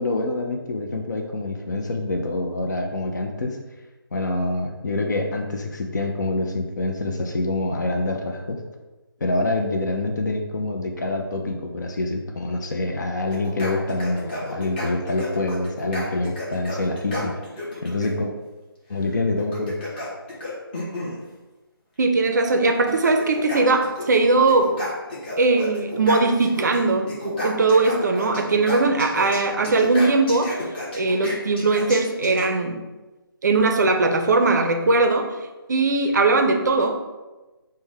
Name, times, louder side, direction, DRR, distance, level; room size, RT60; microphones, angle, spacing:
voice 1, 0.0-3.6 4.1-8.6 9.2-17.4 17.8-18.3 18.9-19.8, left 2 dB, 50° left, 2 dB, 0.5 m, -26 dB
sound 1, 13.3-18.1 19.4-21.2 22.3-22.4 22.7-24.2 24.5-26.8 27.1-32.5, left 1 dB, 20° left, 0.9 m, -32 dB
voice 2, 22.0-24.7 25.4-30.6 30.9-32.8 33.4-35.3 35.7-37.0, right 3 dB, 45° right, 5 dB, 0.5 m, -20 dB
5.3 x 2.2 x 3.3 m, 1.1 s
figure-of-eight pair, 160°, 13 cm